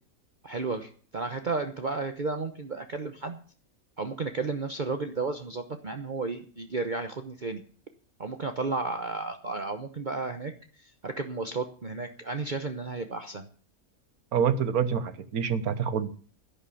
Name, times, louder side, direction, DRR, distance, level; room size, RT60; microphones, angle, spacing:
voice 1, 0.4-3.4 4.0-7.6 8.2-13.5, right 3 dB, 40° right, 7 dB, 1.0 m, -33 dB
voice 2, 14.3-16.1, right 7 dB, 90° right, 12 dB, 1.5 m, -26 dB
11.5 x 10.5 x 7.1 m, 0.42 s
omnidirectional pair, 1.5 m